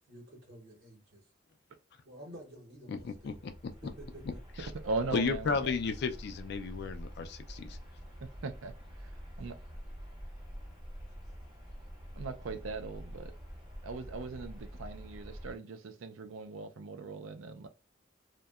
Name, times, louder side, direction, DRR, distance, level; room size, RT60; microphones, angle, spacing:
voice 1, 0.1-1.3 2.0-3.4 3.8-4.4, right 1 dB, 55° right, 0.8 m, -51 dB
voice 2, 2.9-3.5 4.6-4.7 5.1-7.8, left 5 dB, 55° left, 0.4 m, -33 dB
sound 1, 2.9-15.6, equal, 20° right, 0.6 m, -46 dB
voice 3, 4.8-5.7 8.2-8.7 9.0-9.1 9.4-9.6 12.2-13.3 13.8-17.7, right 3 dB, 85° right, 0.4 m, -39 dB
2.7 x 2.1 x 2.2 m
head